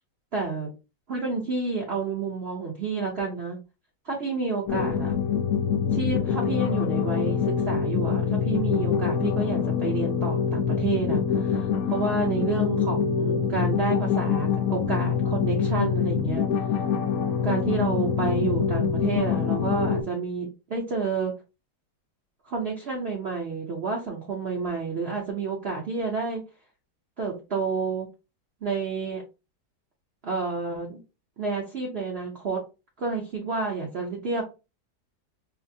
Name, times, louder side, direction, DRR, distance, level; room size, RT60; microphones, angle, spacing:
voice 1, 0.3-0.7 1.1-3.6 4.0-5.1 5.9-16.5 17.4-21.4 22.5-26.4 27.2-28.1 28.6-29.2 30.2-31.0 31.4-32.6 33.0-34.4, right 4 dB, 50° right, -1 dB, 0.8 m, -29 dB
sound 1, 4.7-20.0, left 7 dB, 70° left, 0.9 m, -25 dB
4.8 x 2.1 x 2.6 m, 0.29 s
omnidirectional pair, 1.8 m